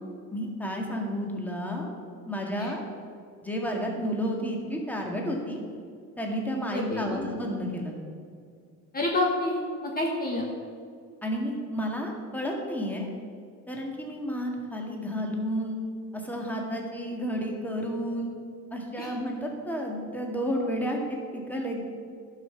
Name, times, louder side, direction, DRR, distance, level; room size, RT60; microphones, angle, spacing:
voice 1, 0.3-1.9 2.3-2.8 3.4-5.6 6.2-8.0 11.2-13.1 13.7-15.8 16.1-18.3 18.7-21.8, equal, 5° left, 0 dB, 2.0 m, -31 dB
voice 2, 6.7-7.3 8.9-10.5 19.0-19.1, left 2 dB, 30° left, -1 dB, 1.4 m, -28 dB
12.0 x 5.9 x 7.1 m, 2.2 s
cardioid pair, 115°, 32 cm